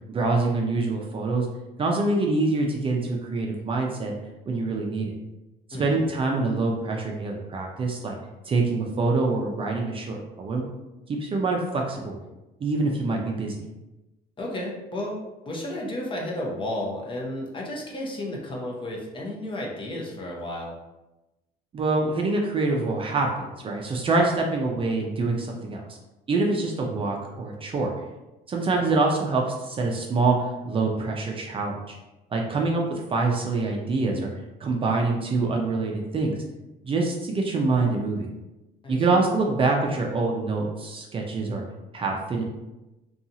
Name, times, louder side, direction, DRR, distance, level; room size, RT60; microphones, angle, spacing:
voice 1, 0.1-1.5 1.8-4.1 4.5-5.1 5.8-8.2 8.4-10.6 11.1-12.2 12.6-13.6 21.7-25.8 26.3-27.9 28.5-30.4 30.7-31.8 32.3-34.3 34.6-36.4 36.8-38.3 38.9-41.6 41.9-42.4, right 3 dB, 30° right, 0 dB, 0.4 m, -25 dB
voice 2, 5.7-6.1 14.4-15.2 15.5-20.8 28.7-28.9 38.8-39.2, left 1 dB, 30° left, -2 dB, 0.7 m, -33 dB
2.7 x 2.3 x 2.7 m, 1.0 s
cardioid pair, 110°, 17 cm